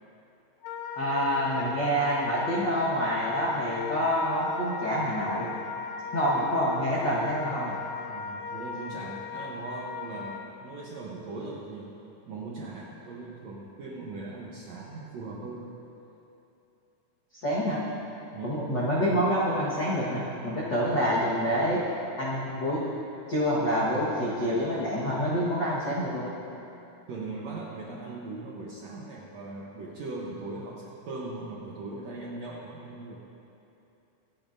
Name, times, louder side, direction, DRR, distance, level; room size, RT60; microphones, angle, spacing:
Wind instrument woodwind instrument, 0.6-10.5, left 6 dB, 85° left, 2.4 m, -37 dB
voice 1, 1.0-5.5 6.1-7.8 17.4-17.8 18.4-21.8 22.2-22.8 23.3-26.3, equal, 60° left, -8 dB, 1.1 m, -27 dB
voice 2, 8.0-11.9 12.3-15.7 18.3-18.7 27.1-33.2, right 3 dB, 70° right, -4 dB, 1.6 m, -39 dB
25.0 x 8.6 x 2.6 m, 2.9 s
omnidirectional pair, 4.2 m